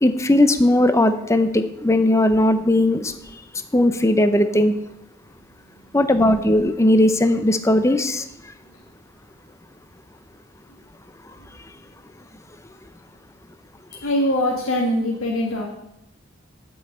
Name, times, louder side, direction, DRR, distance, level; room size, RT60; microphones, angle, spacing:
voice 1, 0.0-3.1 3.7-4.7 5.9-8.3, left 1 dB, 15° left, 9 dB, 0.6 m, -18 dB
voice 2, 14.0-15.6, left 1 dB, 80° left, -2 dB, 1.6 m, -22 dB
8.6 x 5.5 x 7.9 m, 0.83 s
head